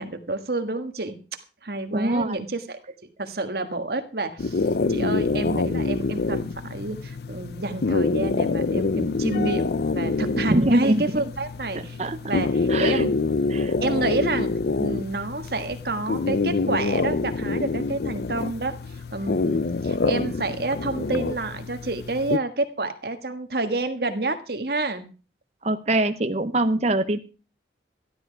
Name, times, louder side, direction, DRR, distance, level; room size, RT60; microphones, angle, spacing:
voice 1, 0.0-12.0 12.3-13.1 13.8-14.5 14.8-25.1, right 2 dB, 55° right, 7 dB, 1.6 m, -29 dB
voice 2, 1.9-2.4 10.5-11.0 11.7-12.2 12.7-13.0 13.5-13.7 25.6-27.2, right 1 dB, 35° right, 8 dB, 0.8 m, -23 dB
sound 1, 4.4-22.4, left 3 dB, 60° left, 0.5 m, -26 dB
13.0 x 12.0 x 4.7 m, 0.35 s
head